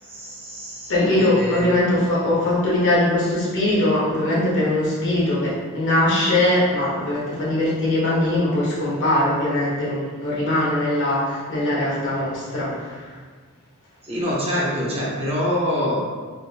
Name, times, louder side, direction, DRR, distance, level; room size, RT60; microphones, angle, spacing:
voice 1, 0.0-1.6 14.0-16.0, equal, 25° right, -7 dB, 0.9 m, -25 dB
voice 2, 0.9-13.2, left 1 dB, 60° left, -7 dB, 1.1 m, -21 dB
3.4 x 2.7 x 2.8 m, 1.5 s
head